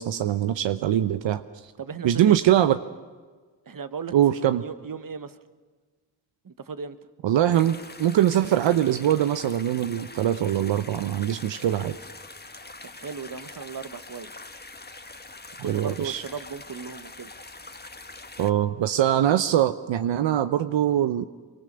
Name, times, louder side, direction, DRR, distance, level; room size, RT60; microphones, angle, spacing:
voice 1, 0.0-1.4 2.0-2.8 4.1-4.6 7.2-12.0 15.6-16.2 18.4-21.2, right 11 dB, 80° right, 11 dB, 0.8 m, -22 dB
voice 2, 1.8-2.4 3.6-4.2 4.6-5.4 6.4-7.0 12.9-14.3 15.6-17.3, right 6 dB, 50° right, 12 dB, 1.4 m, -36 dB
sound 1, 7.5-18.5, left 3 dB, 20° left, 1.7 m, -44 dB
25.0 x 24.0 x 6.8 m, 1.4 s
supercardioid pair, 40°, 44 cm